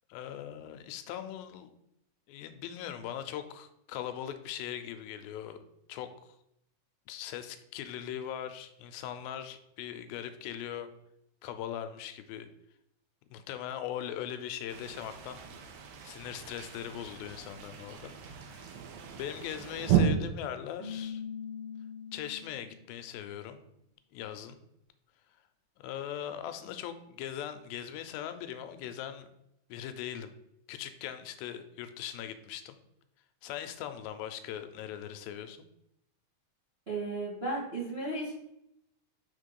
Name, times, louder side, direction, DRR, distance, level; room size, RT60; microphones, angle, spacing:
voice 1, 0.1-1.7 2.3-5.6 5.9-6.4 7.1-10.9 11.4-12.5 13.3-15.4 16.0-18.1 18.4-18.8 19.1-21.2 22.1-23.6 24.1-24.6 25.8-29.3 29.7-30.3 30.7-32.8 33.4-35.6, left 10 dB, 90° left, 9 dB, 2.4 m, -40 dB
sound 1, 14.7-20.0, right 11 dB, 85° right, 2.5 m, -34 dB
Keyboard (musical), 20.8-22.8, left 7 dB, 5° right, 1.8 m, -41 dB
voice 2, 36.9-38.3, right 2 dB, 40° right, -7 dB, 0.9 m, -34 dB
6.2 x 3.6 x 5.3 m, 0.79 s
omnidirectional pair, 4.1 m